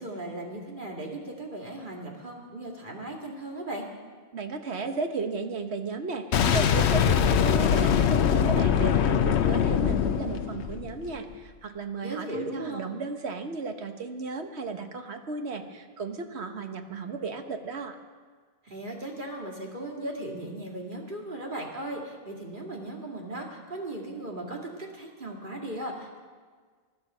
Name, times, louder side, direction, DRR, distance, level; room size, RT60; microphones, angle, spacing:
voice 1, 0.0-3.9 12.0-12.8 18.6-26.2, right 1 dB, 50° right, 0 dB, 2.4 m, -37 dB
voice 2, 4.3-18.0, right 4 dB, 80° right, 6 dB, 1.4 m, -34 dB
Boom, 6.3-11.2, left 8 dB, 85° left, 1.0 m, -23 dB
20.5 x 12.0 x 5.5 m, 1.5 s
omnidirectional pair, 1.1 m